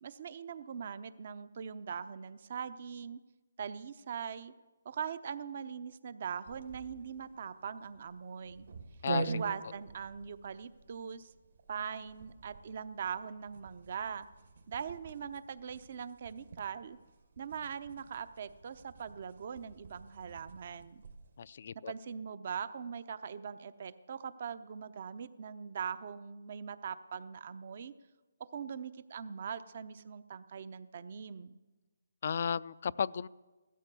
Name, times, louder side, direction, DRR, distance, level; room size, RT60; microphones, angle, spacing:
voice 1, 0.0-3.2 3.6-4.5 4.8-8.7 9.3-11.3 11.7-14.3 14.7-17.0 17.4-21.0 21.9-27.9 28.5-31.6, right 7 dB, 50° right, 14 dB, 0.8 m, -41 dB
sound 1, 6.4-21.4, right 4 dB, 70° right, 2.4 m, -46 dB
voice 2, 9.0-9.4 21.4-21.9 32.2-33.3, left 7 dB, 50° left, 19 dB, 0.4 m, -34 dB
16.0 x 13.0 x 6.9 m, 1.2 s
hypercardioid pair, 155°, 0 cm